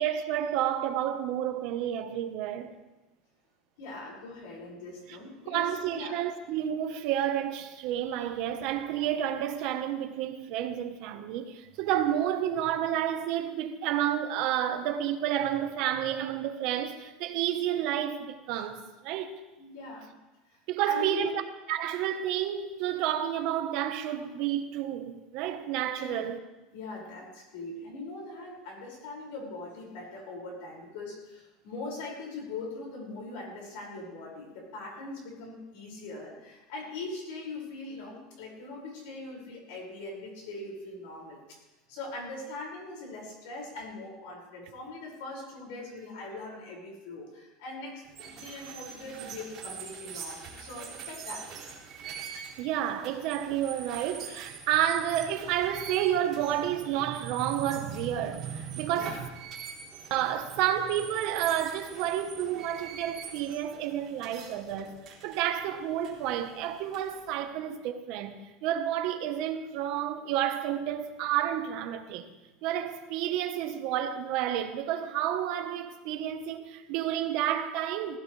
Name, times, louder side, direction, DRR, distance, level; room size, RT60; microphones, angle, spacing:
voice 1, 0.0-2.7 5.5-19.4 20.7-21.3 21.7-26.4 52.1-59.3 60.1-72.3 72.6-78.2, right 11 dB, 50° right, 1.2 m, -30 dB
voice 2, 3.8-6.2 8.1-8.2 19.6-20.1 20.5-21.4 26.0-26.3 26.7-41.4 41.9-48.0 48.4-51.4 58.9-59.2, left 2 dB, 70° left, 5.9 m, -41 dB
sound 1, 48.1-67.3, right 6 dB, 25° right, 4.0 m, -45 dB
17.5 x 16.0 x 3.4 m
cardioid pair, 170°, 0 cm